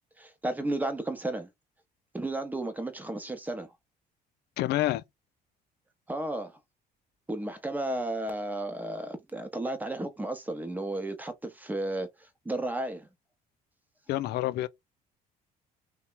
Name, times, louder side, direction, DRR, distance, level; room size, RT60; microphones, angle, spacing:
voice 1, 0.2-1.5 2.1-3.7 6.1-6.6 7.3-13.1, right 2 dB, 10° right, 0.8 m, -33 dB
voice 2, 4.6-5.0 14.1-14.7, left 15 dB, 80° left, 0.4 m, -28 dB
2.9 x 2.2 x 3.9 m
cardioid pair, 110°, 17 cm